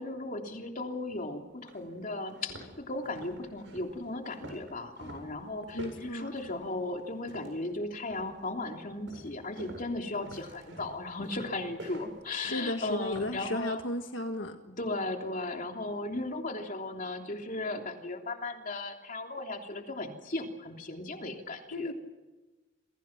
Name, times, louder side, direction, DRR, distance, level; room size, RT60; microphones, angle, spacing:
voice 1, 0.0-13.8 14.8-21.9, left 2 dB, 45° left, 3.2 m, -36 dB
sound 1, 1.1-1.2 1.7-1.8 2.2-7.7 8.1-8.5 9.1-13.4, right 1 dB, 70° right, 7.6 m, -47 dB
voice 2, 5.7-6.3 12.3-14.6 21.7-21.9, left 1 dB, 75° left, 1.7 m, -34 dB
28.5 x 24.5 x 6.0 m
head